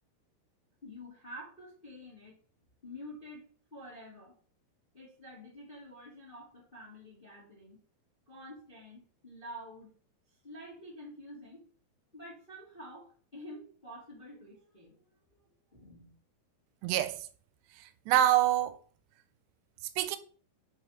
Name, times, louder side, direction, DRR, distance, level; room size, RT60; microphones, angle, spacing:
voice 1, 0.8-2.4 2.8-3.4 3.7-4.4 4.9-7.8 8.3-9.9 10.4-11.6 12.1-15.4 15.7-16.1, equal, 25° left, 1.2 m, -48 dB
voice 2, 16.8-17.3 17.8-18.8 20.0-20.2, right 12 dB, 85° right, 2.6 m, -26 dB
6.0 x 4.7 x 5.5 m
omnidirectional pair, 4.9 m